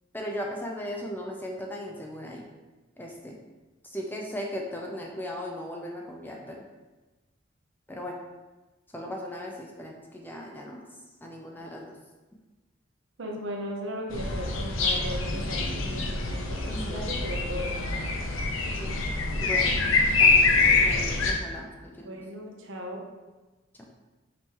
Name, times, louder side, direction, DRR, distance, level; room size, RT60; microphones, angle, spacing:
voice 1, 0.1-2.5 3.0-3.4 3.8-6.6 7.9-8.2 8.9-10.8 11.2-12.0 16.7-17.0 18.7-19.0 19.4-19.9 20.2-22.1 23.8-23.9, left 1 dB, 10° left, 0 dB, 0.3 m, -37 dB
voice 2, 13.2-17.9 22.0-23.0, equal, 70° right, 0 dB, 0.8 m, -37 dB
sound 1, 14.1-21.3, left 3 dB, 85° left, 0.6 m, -25 dB
5.3 x 3.0 x 2.9 m, 1.2 s
head